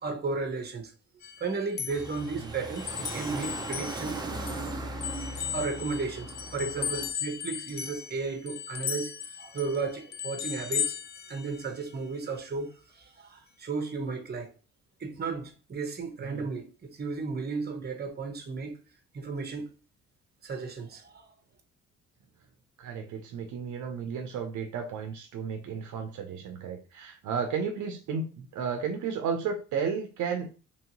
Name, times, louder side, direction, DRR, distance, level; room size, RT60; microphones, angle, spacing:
voice 1, 0.0-0.9 1.4-4.4 5.0-5.2 5.5-11.0 11.3-12.7 13.0-14.5 15.0-18.8 19.1-19.7 20.4-21.3, right 4 dB, 35° right, 0.9 m, -34 dB
sound 1, 1.2-4.7 5.0-11.9, left 9 dB, 35° left, 0.4 m, -37 dB
sound 2, 1.9-7.1, right 2 dB, 15° right, 0.6 m, -38 dB
voice 2, 22.8-30.5, right 6 dB, 75° right, 0.6 m, -33 dB
3.1 x 2.7 x 2.9 m
cardioid pair, 90°, 30 cm